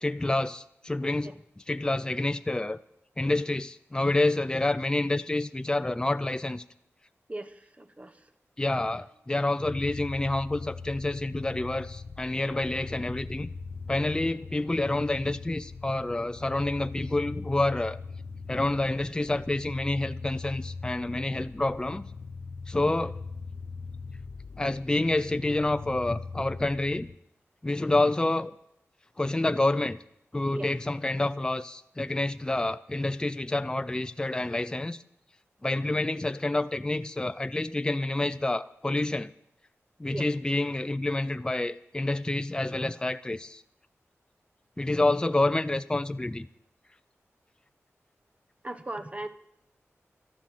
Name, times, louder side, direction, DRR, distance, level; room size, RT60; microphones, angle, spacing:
voice 1, 0.0-2.8 3.2-6.6 8.6-13.5 13.9-18.0 18.5-22.1 22.7-23.2 24.6-27.1 27.6-28.6 29.2-30.0 30.3-35.0 35.6-39.3 40.0-43.6 44.8-46.5, left 2 dB, 15° left, 11 dB, 0.5 m, -28 dB
voice 2, 7.3-8.2 30.5-30.7 40.1-40.3 48.6-49.3, right 2 dB, 25° right, 10 dB, 1.1 m, -38 dB
sound 1, 9.0-9.3 9.6-18.4, right 2 dB, 70° right, 4.3 m, -61 dB
sound 2, 9.6-27.2, left 4 dB, 75° left, 0.6 m, -41 dB
13.0 x 11.5 x 7.6 m, 0.76 s
wide cardioid pair, 80°, 5 cm